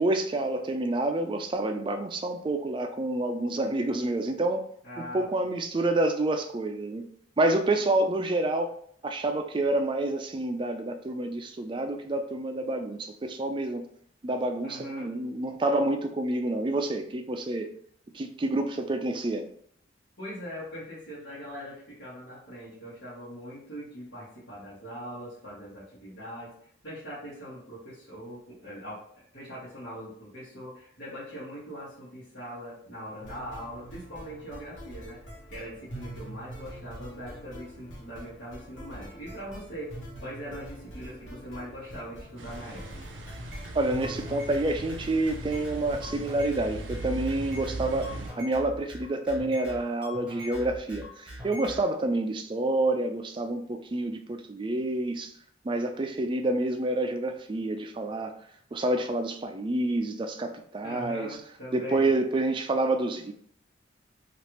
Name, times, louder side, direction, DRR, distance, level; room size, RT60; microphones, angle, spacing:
voice 1, 0.0-4.6 5.0-7.1 7.4-8.7 9.0-13.8 14.2-17.7 18.1-19.5 43.7-55.3 55.6-58.4 58.7-61.3 61.7-63.3, right 2 dB, 25° right, 5 dB, 0.3 m, -28 dB
voice 2, 4.8-5.3 14.6-15.1 20.2-35.2 35.5-42.8 60.8-62.1, equal, 70° left, -10 dB, 1.2 m, -41 dB
sound 1, 33.2-46.2, right 1 dB, 85° left, 1.0 m, -44 dB
sound 2, 42.4-48.3, right 2 dB, 85° right, 0.5 m, -40 dB
sound 3, 43.3-51.8, left 1 dB, 5° right, 0.9 m, -42 dB
3.1 x 2.4 x 3.0 m, 0.63 s
head